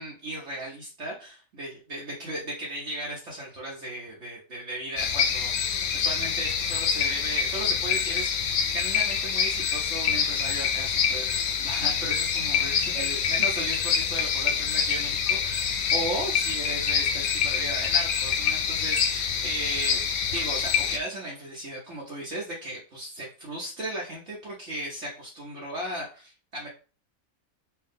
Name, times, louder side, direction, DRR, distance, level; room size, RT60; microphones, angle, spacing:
voice 1, 0.0-20.0 20.3-26.7, right 1 dB, 60° right, -4 dB, 1.2 m, -36 dB
sound 1, 5.0-21.0, left 7 dB, 85° left, 1.1 m, -26 dB
4.6 x 2.3 x 3.6 m, 0.36 s
omnidirectional pair, 1.5 m